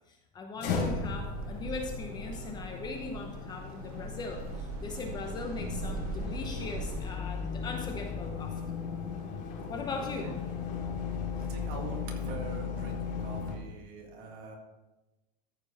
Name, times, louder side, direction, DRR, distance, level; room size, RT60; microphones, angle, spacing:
voice 1, 0.1-8.7 9.7-10.3, left 4 dB, 20° left, 3 dB, 0.8 m, -39 dB
sound 1, 0.6-13.6, left 5 dB, 80° left, 3.0 m, -37 dB
sound 2, 0.7-7.2, right 4 dB, 65° right, 1.1 m, -41 dB
voice 2, 10.0-10.4 11.5-14.6, right 5 dB, 45° right, 1 dB, 2.0 m, -43 dB
13.5 x 5.3 x 4.2 m, 1.1 s
supercardioid pair, 165°, 21 cm